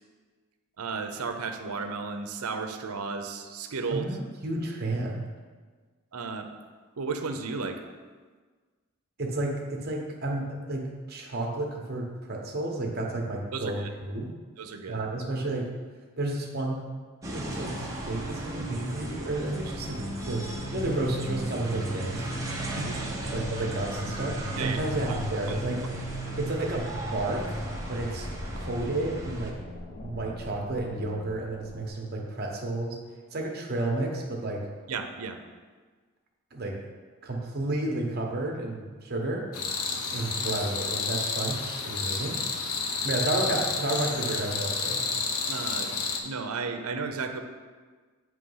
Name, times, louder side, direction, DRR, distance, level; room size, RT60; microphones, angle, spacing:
voice 1, 0.8-4.0 6.1-6.5 7.0-7.8 13.5-13.9 14.6-15.0 22.8-23.0 24.6-24.8 25.1-25.2 25.5-25.6 34.9-35.4 45.5-45.9 46.2-47.4, right 4 dB, 85° right, 6 dB, 0.6 m, -33 dB
voice 2, 4.4-5.2 9.2-14.3 14.9-15.7 16.2-16.8 17.3-22.3 23.3-25.9 26.4-27.6 27.9-28.3 28.5-29.6 30.0-33.0 33.3-34.7 36.5-36.8 37.2-39.4 40.1-42.4 43.0-45.0, right 2 dB, 45° right, 0 dB, 1.0 m, -31 dB
sound 1, 17.2-29.5, right 1 dB, 15° right, 0.7 m, -36 dB
sound 2, 19.2-31.9, equal, 40° left, 0.7 m, -39 dB
sound 3, 39.5-46.2, left 4 dB, 80° left, 0.7 m, -30 dB
8.3 x 3.1 x 5.5 m, 1.5 s
head